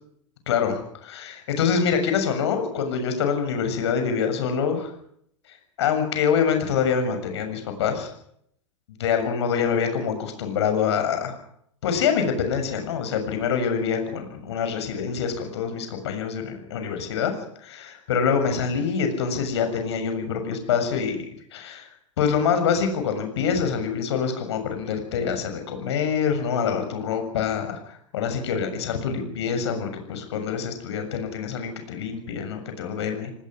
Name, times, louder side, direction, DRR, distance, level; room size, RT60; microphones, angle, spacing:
voice 1, 0.5-4.9 5.5-8.1 9.0-11.4 11.8-21.3 21.5-21.9 22.2-33.3, left 6 dB, 60° left, 7 dB, 7.0 m, -25 dB
28.0 x 19.5 x 6.3 m, 0.69 s
figure-of-eight pair, 95°, 16 cm